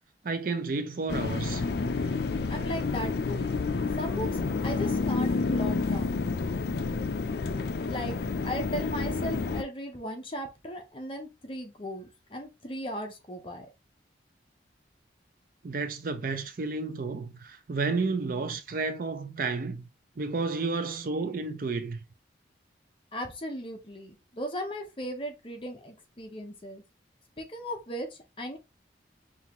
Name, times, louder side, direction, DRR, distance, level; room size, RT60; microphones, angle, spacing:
voice 1, 0.2-1.6 15.6-19.8 20.2-22.0, right 3 dB, 50° right, 0.5 m, -31 dB
sound 1, 1.1-9.6, left 4 dB, 55° left, 0.4 m, -29 dB
voice 2, 2.5-3.5 4.0-6.2 7.9-8.2 8.4-13.7 23.1-26.8 27.4-28.6, equal, 30° left, 0.8 m, -37 dB
5.4 x 2.4 x 2.9 m
head